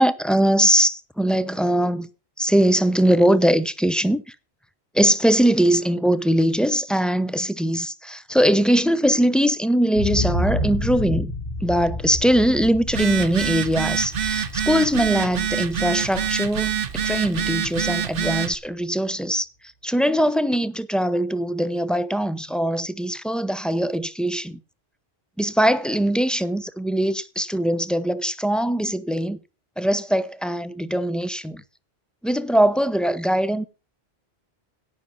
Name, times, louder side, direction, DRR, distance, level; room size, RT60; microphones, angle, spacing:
voice 1, 0.0-2.1 2.4-4.3 4.9-11.3 11.6-19.5 19.8-24.6 25.4-29.4 29.8-31.6 32.2-33.6, equal, ahead, 0.6 m, -21 dB
sound 1, 9.9-17.8 18.3-18.4, left 1 dB, 55° left, 2.9 m, -30 dB
Telephone, 12.9-18.5, right 8 dB, 60° right, 1.0 m, -26 dB
17.0 x 6.6 x 5.5 m
omnidirectional pair, 1.1 m